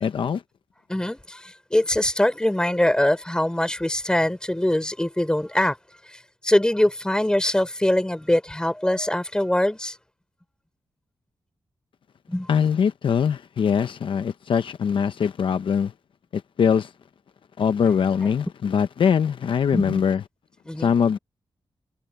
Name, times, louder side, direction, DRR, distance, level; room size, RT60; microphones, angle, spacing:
voice 1, 0.0-0.4 12.5-15.9 16.3-16.9 17.6-20.2 20.8-21.2, left 7 dB, 75° left, 0.7 m, -22 dB
voice 2, 0.9-5.8 6.1-10.0 12.3-12.5 19.7-20.0 20.7-20.9, left 1 dB, 10° left, 5.3 m, -23 dB
wide cardioid pair, 95°, 9 cm